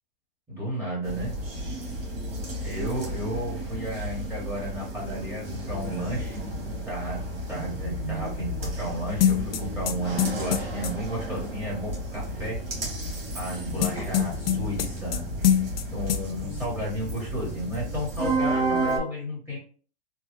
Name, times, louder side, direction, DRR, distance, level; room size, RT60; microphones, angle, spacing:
voice 1, 0.5-1.3 2.6-6.4 6.8-12.6 13.3-15.3 15.9-19.6, equal, 5° right, -6 dB, 1.3 m, -33 dB
sound 1, 1.0-19.0, right 1 dB, 85° right, 1.5 m, -32 dB
sound 2, 9.2-10.9 13.8-15.2 15.4-15.8 16.1-16.2, left 9 dB, 75° left, 0.5 m, -23 dB
3.1 x 2.3 x 3.0 m, 0.42 s
hypercardioid pair, 145°, 29 cm